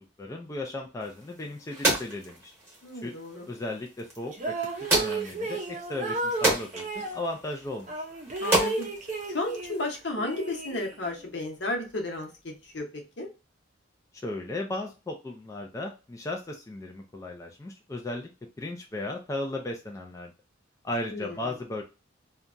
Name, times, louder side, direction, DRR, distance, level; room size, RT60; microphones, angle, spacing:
voice 1, 0.2-2.5 3.0-3.1 3.5-4.5 5.0-8.0 14.2-18.3 18.6-20.3 20.8-21.8, left 2 dB, 15° left, 1 dB, 0.3 m, -35 dB
sound 1, 1.0-10.0, right 2 dB, 15° right, 1.0 m, -32 dB
voice 2, 2.8-3.5 8.4-8.9 9.3-13.3 21.1-21.5, left 2 dB, 65° left, 1 dB, 0.8 m, -33 dB
sound 2, 4.3-7.2 7.9-9.8 10.2-11.3, right 3 dB, 40° right, 0.5 m, -33 dB
2.8 x 2.2 x 2.5 m, 0.29 s
head